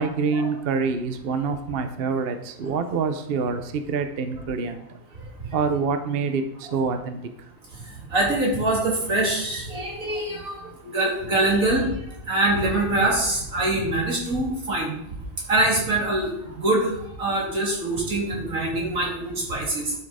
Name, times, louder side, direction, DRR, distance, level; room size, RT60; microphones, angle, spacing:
voice 1, 0.0-4.8 5.5-7.2, right 5 dB, 50° right, 8 dB, 0.9 m, -26 dB
voice 2, 8.1-11.9 12.3-14.9 15.5-16.9 17.2-19.9, right 2 dB, 90° right, -3 dB, 3.5 m, -24 dB
11.5 x 6.4 x 4.9 m, 0.81 s
omnidirectional pair, 1.4 m